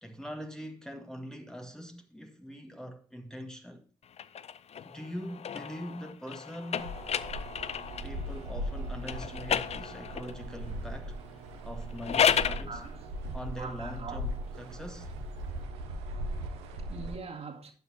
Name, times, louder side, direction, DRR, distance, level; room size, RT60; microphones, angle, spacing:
voice 1, 0.0-3.8 4.8-7.0 8.0-11.2 11.6-12.8 13.3-15.1, equal, 5° left, 1.7 m, -42 dB
sound 1, 4.1-8.2 9.0-10.4 11.8-12.7, left 8 dB, 50° left, 0.6 m, -32 dB
sound 2, 6.8-17.2, right 1 dB, 85° right, 1.1 m, -39 dB
voice 2, 12.7-14.3 15.6-17.7, right 4 dB, 45° right, 2.1 m, -45 dB
12.0 x 7.9 x 2.8 m
hypercardioid pair, 45°, 14 cm